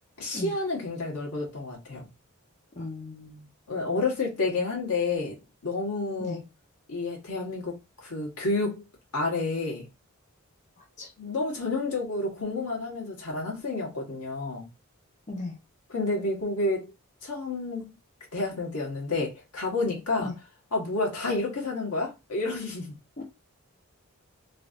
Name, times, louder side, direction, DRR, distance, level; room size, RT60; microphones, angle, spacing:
voice 1, 0.2-2.1 3.7-5.3 5.6-6.4 6.9-7.7 8.0-8.8 9.1-9.9 11.2-14.7 15.9-16.9 17.2-17.9 18.3-20.3 20.7-22.9, left 3 dB, 90° left, 1.4 m, -30 dB
voice 2, 2.8-3.5 6.2-6.4 11.0-11.1 15.3-15.6 20.2-20.3 23.2-23.3, left 2 dB, 35° left, 0.6 m, -36 dB
3.2 x 2.6 x 2.4 m
head